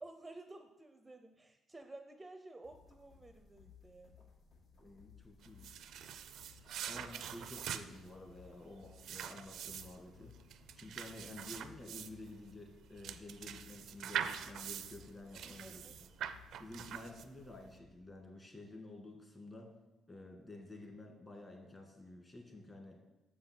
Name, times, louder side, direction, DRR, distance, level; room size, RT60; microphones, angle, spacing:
voice 1, 0.0-4.3 6.7-7.2 15.6-15.9, right 2 dB, 20° right, 7 dB, 0.5 m, -53 dB
sound 1, 2.6-18.1, left 6 dB, 75° left, 1.8 m, -62 dB
voice 2, 4.8-5.7 6.8-10.4 10.8-16.1 16.6-19.7 20.1-23.0, left 2 dB, 25° left, 1 dB, 2.0 m, -51 dB
sound 2, 5.4-17.5, right 9 dB, 75° right, 0.4 m, -44 dB
6.8 x 5.5 x 6.0 m, 1.0 s
cardioid pair, 90°, 0 cm